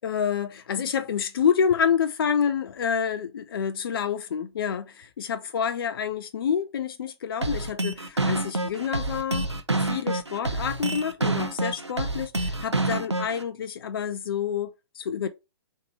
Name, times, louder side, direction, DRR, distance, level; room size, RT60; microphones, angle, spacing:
voice 1, 0.0-9.5 9.8-15.3, left 7 dB, 55° left, 0.5 m, -28 dB
sound 1, 7.4-13.4, right 2 dB, 90° right, 0.7 m, -27 dB
3.8 x 3.1 x 4.3 m
figure-of-eight pair, 120°, 14 cm